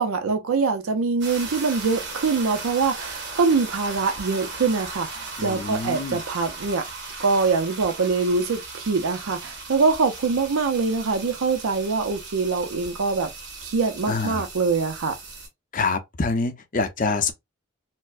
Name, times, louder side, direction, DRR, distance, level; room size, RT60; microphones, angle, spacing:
voice 1, 0.0-6.8 7.2-13.3 13.6-15.2, right 4 dB, 80° right, 0.5 m, -24 dB
sound 1, 1.2-15.5, right 3 dB, 55° right, 1.6 m, -37 dB
voice 2, 5.4-6.2 14.1-14.4 15.7-17.3, left 4 dB, 40° left, 0.5 m, -26 dB
4.3 x 2.0 x 2.4 m
head